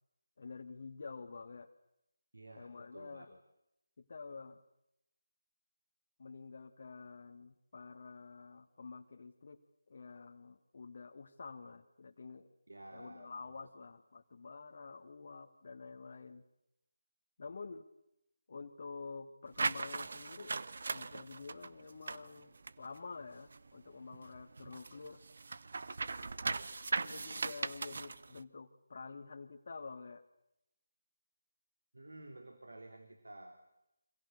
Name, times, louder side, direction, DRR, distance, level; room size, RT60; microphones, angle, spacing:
voice 1, 0.4-1.7 2.5-3.4 4.0-4.6 6.2-12.5 12.9-16.4 17.4-17.9 18.5-20.6 20.9-25.2 27.0-30.2, left 4 dB, 50° left, 3 dB, 1.8 m, -49 dB
voice 2, 2.3-3.3 12.7-13.4 26.6-27.2 31.9-33.6, right 2 dB, 75° right, 6 dB, 3.4 m, -53 dB
sound 1, 19.5-23.8 24.1-28.4, right 4 dB, 55° right, 1.1 m, -39 dB
28.5 x 26.0 x 6.7 m, 0.84 s
figure-of-eight pair, 155°, 0 cm